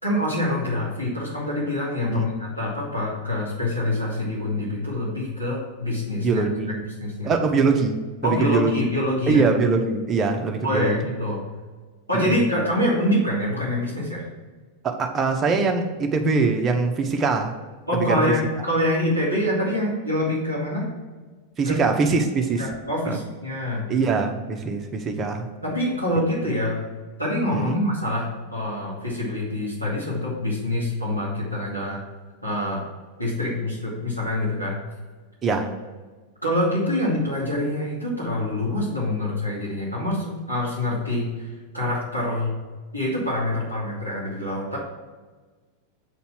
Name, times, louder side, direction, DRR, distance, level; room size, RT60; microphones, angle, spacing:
voice 1, 0.0-6.4 7.0-7.3 8.2-9.4 10.6-11.4 12.1-14.3 17.9-20.9 21.6-21.8 22.6-23.8 25.6-26.8 27.2-32.0 32.4-32.8 33.2-34.8 36.4-41.3 41.7-42.5 42.9-44.8, left 1 dB, 90° left, -7 dB, 2.5 m, -25 dB
voice 2, 6.2-6.7 7.2-8.7 9.3-11.0 12.1-12.4 14.8-17.5 17.9-18.3 21.6-22.7 23.0-23.2 23.9-25.5 27.5-27.8 35.4-35.7, right 4 dB, 25° right, 4 dB, 1.0 m, -23 dB
7.5 x 4.2 x 6.0 m, 1.4 s
figure-of-eight pair, 90°, 0 cm